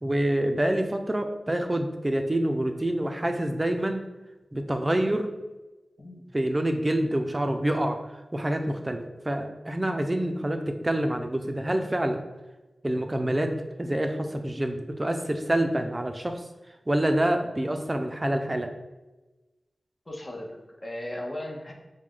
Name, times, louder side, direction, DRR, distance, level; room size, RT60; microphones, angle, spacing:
voice 1, 0.0-4.0 4.5-5.3 6.3-8.0 8.3-9.0 9.2-12.2 12.8-13.5 13.8-16.4 16.9-18.7, right 1 dB, 25° right, 6 dB, 0.4 m, -26 dB
voice 2, 20.1-21.7, left 1 dB, 35° left, 0 dB, 0.8 m, -37 dB
4.6 x 2.2 x 3.7 m, 1.1 s
cardioid pair, 55°, 0 cm